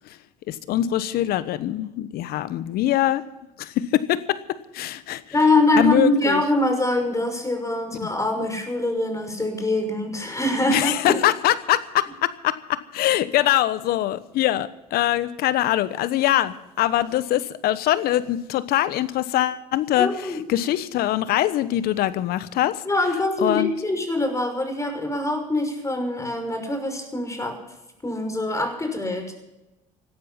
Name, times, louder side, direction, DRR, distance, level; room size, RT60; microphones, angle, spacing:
voice 1, 0.5-3.2 3.6-4.4 4.7-5.2 5.7-6.4 8.0-8.1 10.7-22.8 23.4-23.7, left 13 dB, 65° left, 15 dB, 1.1 m, -23 dB
voice 2, 5.3-11.2 20.0-20.4 22.8-27.6 28.0-29.3, left 2 dB, 20° left, 5 dB, 6.0 m, -24 dB
17.0 x 12.5 x 5.8 m, 0.95 s
hypercardioid pair, 65°, 17 cm